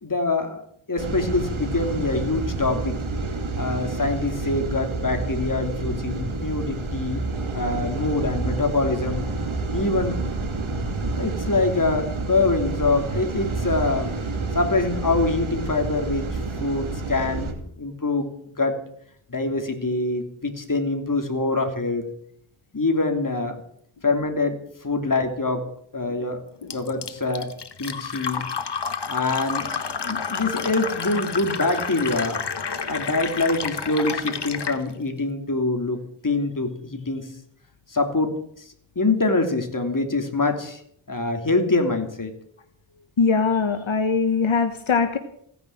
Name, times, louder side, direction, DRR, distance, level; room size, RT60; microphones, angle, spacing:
voice 1, 0.0-0.6 0.9-3.0 3.6-7.2 7.5-9.2 9.7-10.2 11.2-14.1 14.5-17.5 17.8-18.3 18.6-18.8 19.3-22.1 22.7-23.6 24.0-24.6 24.8-25.7 25.9-26.4 26.7-27.5 27.8-28.4 29.1-29.6 30.0-32.4 32.9-37.3 37.9-38.3 38.9-40.8 41.1-42.3, left 3 dB, 40° left, 5 dB, 3.1 m, -24 dB
sound 1, 1.0-17.5, right 3 dB, 80° right, 2.7 m, -29 dB
Fill (with liquid), 26.7-34.8, left 6 dB, 55° left, 1.3 m, -30 dB
voice 2, 43.2-45.2, left 5 dB, 75° left, 7 dB, 1.3 m, -21 dB
16.5 x 10.0 x 8.7 m, 0.68 s
wide cardioid pair, 85°, 48 cm